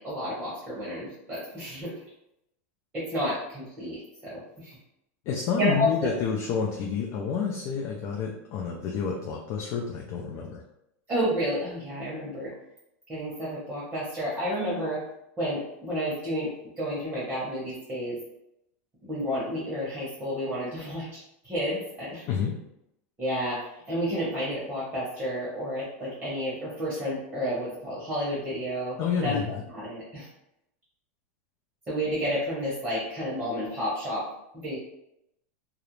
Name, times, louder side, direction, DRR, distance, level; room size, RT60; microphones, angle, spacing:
voice 1, 0.0-1.9 2.9-4.0 4.2-4.4 5.6-6.1 11.1-12.5 13.1-15.0 15.4-16.5 16.8-18.2 19.1-21.2 21.5-22.2 23.2-23.6 23.9-29.4 29.7-30.2 31.9-34.2 34.5-34.8, equal, 20° right, -7 dB, 0.9 m, -30 dB
voice 2, 5.3-10.6 22.3-22.5 29.0-29.6, left 6 dB, 45° left, 0 dB, 0.4 m, -29 dB
2.3 x 2.0 x 3.0 m, 0.81 s
supercardioid pair, 135°, 7 cm